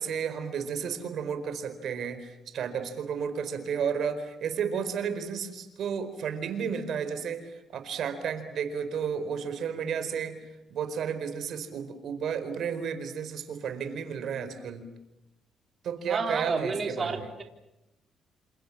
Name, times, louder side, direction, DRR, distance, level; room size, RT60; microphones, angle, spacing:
voice 1, 0.0-14.8 15.8-17.3, right 7 dB, 70° right, 10 dB, 4.6 m, -32 dB
voice 2, 16.1-17.4, right 4 dB, 35° right, 4 dB, 3.9 m, -30 dB
28.5 x 28.0 x 7.4 m, 0.91 s
cardioid pair, 90°, 0 cm